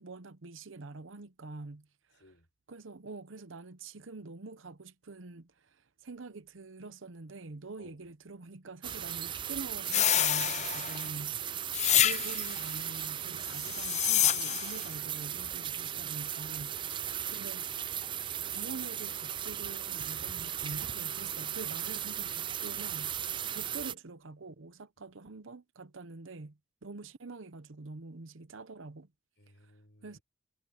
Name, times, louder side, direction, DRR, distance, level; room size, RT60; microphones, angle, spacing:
voice 1, 0.0-1.9 2.1-2.2 2.7-5.8 6.0-11.3 12.0-17.7 18.4-23.1 23.5-29.1 30.0-30.2, right 3 dB, 65° right, 0.8 m, -46 dB
voice 2, 2.2-2.5 7.8-8.0 11.3-11.9 16.7-17.5 23.6-23.7 29.4-30.2, left 1 dB, 55° left, 6.4 m, -60 dB
sound 1, 8.8-23.9, right 10 dB, 25° right, 0.3 m, -37 dB
sound 2, 9.9-11.1 11.7-12.6 13.6-14.8, left 11 dB, 35° left, 0.6 m, -28 dB
head